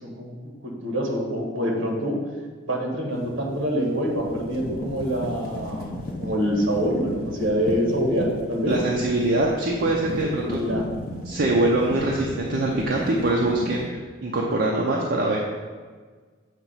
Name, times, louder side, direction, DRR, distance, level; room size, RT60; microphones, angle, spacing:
voice 1, 0.0-2.2 2.6-5.9 6.2-8.7 10.4-10.9, equal, 65° right, -1 dB, 1.5 m, -26 dB
sound 1, 3.2-3.4 3.9-13.9, left 1 dB, 45° left, 0.7 m, -34 dB
voice 2, 8.7-10.6 11.3-13.9 14.2-15.4, right 2 dB, 50° right, -2 dB, 0.6 m, -23 dB
7.4 x 2.9 x 5.6 m, 1.5 s
head